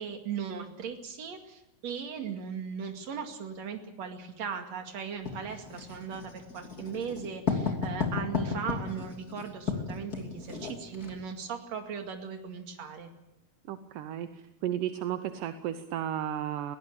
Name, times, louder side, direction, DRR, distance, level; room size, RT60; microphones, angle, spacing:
voice 1, 0.0-13.1, right 7 dB, 45° right, 4 dB, 3.1 m, -38 dB
Writing, 5.3-11.2, left 4 dB, 25° left, 2.8 m, -34 dB
voice 2, 13.7-14.3 14.6-16.8, right 10 dB, 75° right, 9 dB, 2.1 m, -33 dB
22.0 x 17.0 x 8.4 m, 0.94 s
omnidirectional pair, 4.6 m